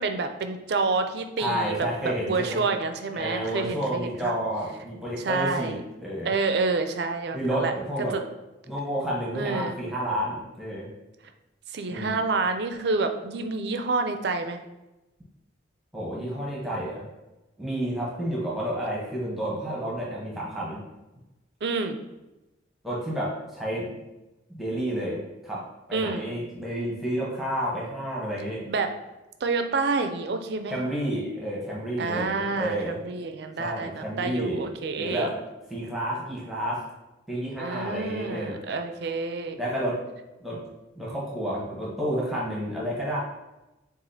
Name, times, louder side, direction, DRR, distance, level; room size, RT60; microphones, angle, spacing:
voice 1, 0.0-4.3 5.2-5.8 6.3-7.7 8.1-8.2 9.3-9.8 11.7-14.6 21.6-22.0 25.9-26.3 28.7-28.9 29.4-30.7 32.0-35.3 37.6-39.6, right 4 dB, 60° right, 7 dB, 0.4 m, -28 dB
voice 2, 1.4-2.6 3.1-6.3 7.3-8.2 8.7-10.9 11.9-12.1 15.9-17.1 17.6-20.8 22.8-24.0 24.5-25.6 25.9-28.6 30.7-33.0 33.6-34.7 35.0-35.3 35.7-36.8 37.3-38.6 39.6-40.0 40.4-40.6 41.0-43.2, right 1 dB, ahead, -6 dB, 0.9 m, -30 dB
7.0 x 2.5 x 2.7 m, 1.0 s
head